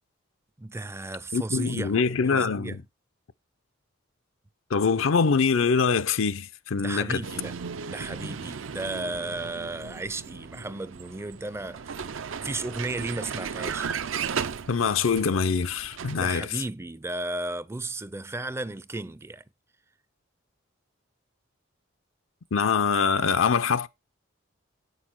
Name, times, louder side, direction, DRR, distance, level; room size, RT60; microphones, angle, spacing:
voice 1, 0.6-1.9 2.3-2.8 6.8-7.5 7.9-12.1 12.4-13.9 16.1-19.4, right 2 dB, 15° right, 0.4 m, -34 dB
voice 2, 1.3-2.8 4.7-7.2 14.7-16.6 22.5-23.9, left 5 dB, 80° left, 0.6 m, -24 dB
Vehicle, 7.2-16.3, right 6 dB, 75° right, 0.6 m, -36 dB
8.0 x 6.5 x 4.5 m
head